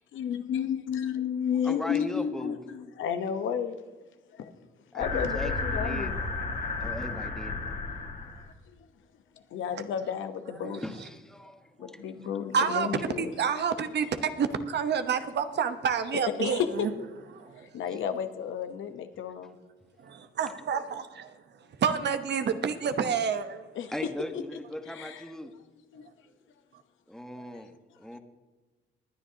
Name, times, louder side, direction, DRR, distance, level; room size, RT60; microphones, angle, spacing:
voice 1, 0.1-3.8 4.3-4.5 4.9-6.2 8.7-8.9 9.5-10.9 11.8-13.3 16.4-16.9 17.7-19.6 23.7-23.9 24.8-25.2 25.9-26.1 27.5-27.6, left 8 dB, 80° left, 8 dB, 1.0 m, -32 dB
voice 2, 1.6-2.6 4.9-6.5 6.8-7.7 10.4-12.3 23.9-25.5 27.1-27.7 28.0-28.2, equal, 5° left, 6 dB, 1.3 m, -39 dB
sound 1, 5.0-8.5, left 3 dB, 45° left, 1.9 m, -32 dB
voice 3, 12.5-12.9 13.2-16.9 17.3-17.7 20.0-21.3 21.8-23.6, right 6 dB, 60° right, 9 dB, 1.0 m, -29 dB
20.0 x 10.0 x 2.8 m, 1.2 s
cardioid pair, 90°, 20 cm